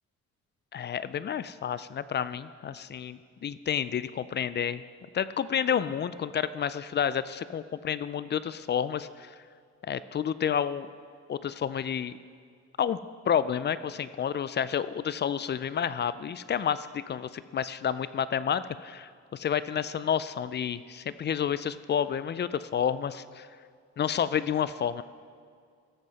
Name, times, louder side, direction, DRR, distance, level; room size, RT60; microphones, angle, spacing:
voice 1, 0.7-4.8 5.1-9.4 9.9-10.9 11.3-12.1 12.8-13.0 13.3-23.5 24.0-25.0, left 8 dB, 35° left, 15 dB, 0.4 m, -30 dB
14.0 x 7.6 x 4.1 m, 2.2 s
cardioid pair, 90°, 30 cm